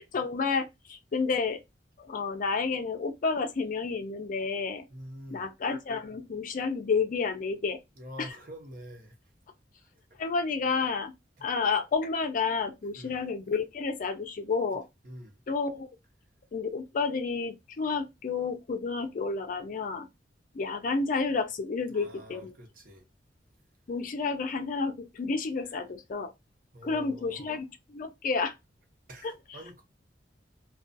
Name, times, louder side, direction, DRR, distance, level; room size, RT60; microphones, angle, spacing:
voice 1, 0.0-1.6 2.0-4.8 5.3-7.8 8.2-8.4 10.2-11.1 11.4-14.9 15.5-15.9 16.5-20.1 20.5-22.6 23.9-26.3 26.8-28.5 29.2-29.8, left 4 dB, 50° left, 0.4 m, -30 dB
voice 2, 4.9-5.4 8.0-9.1 13.0-13.2 15.0-15.3 21.9-23.0 26.7-27.5 29.1-29.3 29.5-29.8, equal, 50° right, 0.8 m, -45 dB
2.3 x 2.2 x 2.5 m
head